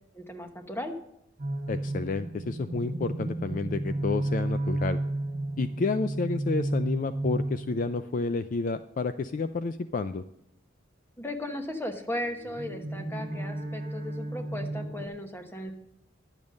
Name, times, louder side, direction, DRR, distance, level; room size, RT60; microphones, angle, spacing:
voice 1, 0.1-0.9 11.2-15.8, left 1 dB, 10° left, 6 dB, 1.0 m, -36 dB
sound 1, 1.4-8.0 12.3-15.1, right 1 dB, 50° right, 1.3 m, -32 dB
voice 2, 1.7-5.0 5.6-10.2, left 4 dB, 40° left, 11 dB, 0.3 m, -30 dB
10.5 x 7.1 x 6.4 m, 0.80 s
head